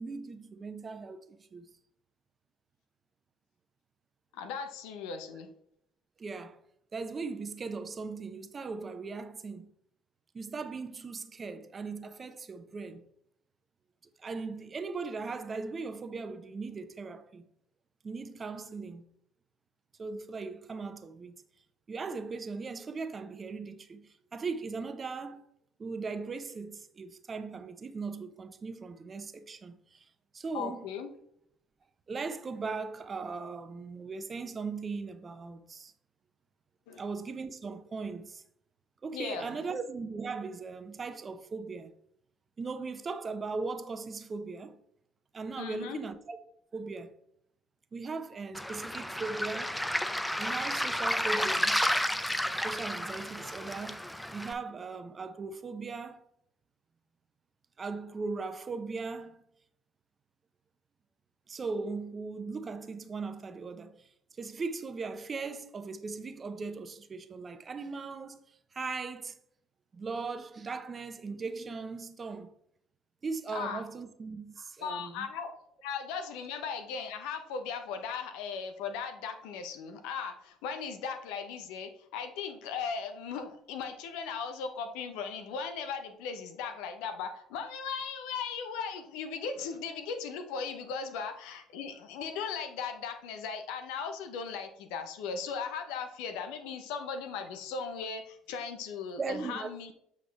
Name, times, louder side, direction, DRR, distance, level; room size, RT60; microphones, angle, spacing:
voice 1, 0.0-1.6 6.2-6.6 6.9-9.7 10.3-13.0 14.2-17.4 18.0-19.0 20.0-21.4 21.9-25.4 25.8-30.1 30.3-30.9 32.1-35.9 37.0-38.4 39.0-41.9 42.6-44.8 45.3-46.4 46.7-47.2 47.9-49.7 50.4-51.8 52.6-54.0 54.3-56.3 57.8-59.4 61.5-69.4 69.9-72.5 73.2-75.3 99.2-99.9, right 4 dB, 35° right, 0.8 m, -38 dB
voice 2, 4.3-5.5 30.5-31.1 36.9-37.0 39.1-39.6 45.6-46.0 73.5-73.8 74.8-75.5 75.8-99.9, left 6 dB, 75° left, 0.9 m, -37 dB
Waves surf, 48.5-54.5, equal, 5° left, 0.6 m, -31 dB
8.0 x 4.8 x 3.5 m
hypercardioid pair, 60°, 0 cm